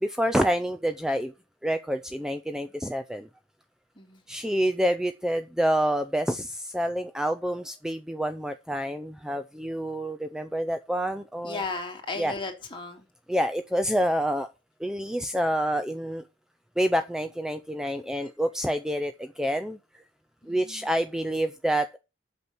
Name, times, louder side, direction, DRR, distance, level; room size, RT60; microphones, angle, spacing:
voice 1, 0.0-1.3 1.6-3.3 4.3-11.6 12.2-12.3 13.3-14.5 14.8-16.2 16.8-19.8 20.5-22.0, equal, 5° right, 9 dB, 0.5 m, -27 dB
voice 2, 11.4-13.1 20.4-20.9, left 3 dB, 30° left, 3 dB, 2.8 m, -35 dB
8.5 x 6.1 x 7.9 m, 0.29 s
head